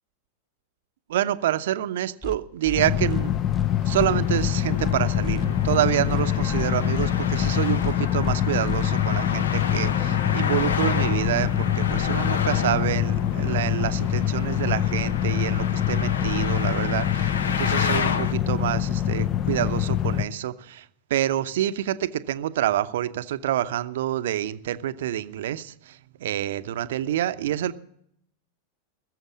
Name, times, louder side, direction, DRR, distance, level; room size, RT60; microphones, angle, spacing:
voice 1, 1.1-3.3 3.8-27.7, right 12 dB, 55° right, 0.8 m, -27 dB
sound 1, 2.2-2.4 2.6-2.8 3.1-3.2 3.5-3.7 3.9-4.1 4.4-4.5 4.8-4.9 5.2-5.8 6.1-6.2 6.5-6.7 6.9-7.1 7.4-7.5 7.8-7.9 8.2-8.4 8.6-8.9, left 1 dB, 15° left, 1.5 m, -35 dB
sound 2, 2.8-20.2, left 11 dB, 35° left, 0.6 m, -24 dB
Traffic noise roadway noise, 3.9-18.3, left 6 dB, 65° left, 0.8 m, -32 dB
19.5 x 7.4 x 7.2 m
figure-of-eight pair, 90°, 0 cm